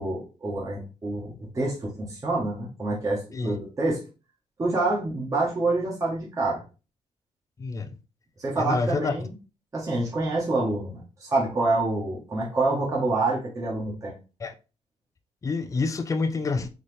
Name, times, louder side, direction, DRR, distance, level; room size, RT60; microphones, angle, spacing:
voice 1, 0.0-4.0 4.6-6.6 8.4-9.3 9.7-14.1, right 2 dB, 25° right, 1.6 m, -27 dB
voice 2, 7.6-8.0 8.6-9.3 14.4-14.5 15.4-16.7, left 4 dB, 25° left, 0.5 m, -28 dB
4.1 x 3.5 x 3.4 m
cardioid pair, 95°, 12 cm